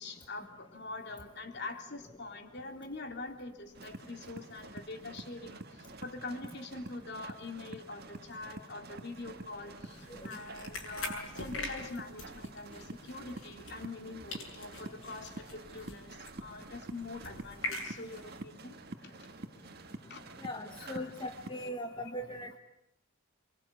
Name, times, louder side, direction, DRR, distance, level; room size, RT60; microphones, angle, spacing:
voice 1, 0.0-19.1 20.1-20.2 20.8-21.1, left 3 dB, 50° left, 4 dB, 3.2 m, -44 dB
sound 1, 3.7-21.7, right 2 dB, 45° right, 1.6 m, -48 dB
sound 2, 9.9-14.1 14.3-18.4, left 2 dB, 70° left, 7.1 m, -44 dB
voice 2, 20.4-22.6, left 1 dB, 20° left, 4 dB, 1.3 m, -39 dB
29.0 x 24.5 x 8.3 m, 0.84 s
head